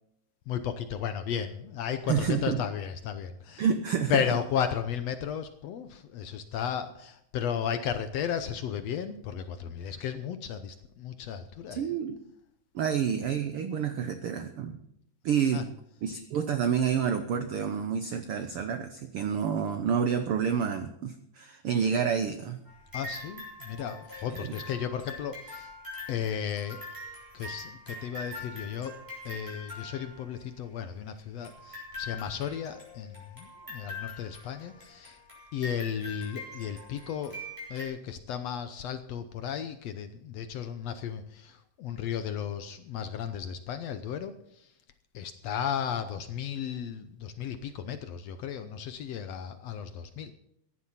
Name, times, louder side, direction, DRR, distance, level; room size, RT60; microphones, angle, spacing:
voice 1, 0.5-3.7 4.1-11.9 15.5-15.6 22.9-25.7 26.1-26.8 27.3-29.0 29.2-35.2 35.5-37.4 37.7-44.3 45.1-50.3, left 8 dB, 70° left, 10 dB, 1.7 m, -34 dB
voice 2, 2.1-2.6 3.6-4.2 11.7-12.2 12.7-14.8 15.2-15.7 16.0-22.6 24.4-24.6, right 7 dB, 85° right, 9 dB, 1.2 m, -29 dB
sound 1, 22.7-30.6 31.4-37.9, left 2 dB, 5° right, 6.0 m, -43 dB
15.5 x 11.0 x 5.7 m, 0.75 s
omnidirectional pair, 3.7 m